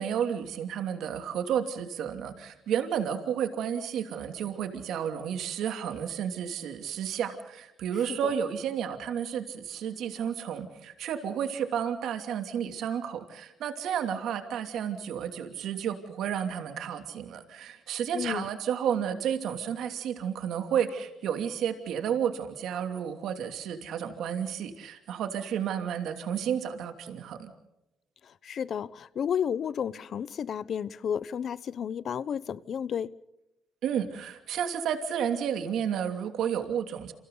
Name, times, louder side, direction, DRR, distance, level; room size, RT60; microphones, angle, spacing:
voice 1, 0.0-27.5 33.8-37.1, right 8 dB, 75° right, 2.8 m, -31 dB
voice 2, 18.1-18.5 28.2-33.1, left 8 dB, 55° left, 0.9 m, -32 dB
28.5 x 28.0 x 4.0 m
cardioid pair, 105°, 0 cm